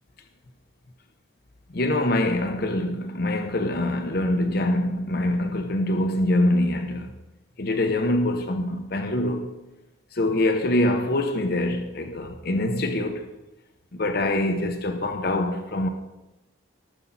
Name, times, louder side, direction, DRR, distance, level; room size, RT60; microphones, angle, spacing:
voice 1, 1.7-7.1 7.6-9.5 10.1-13.3 13.9-15.9, left 1 dB, 50° left, 0.9 m, -24 dB
18.0 x 7.3 x 4.1 m
head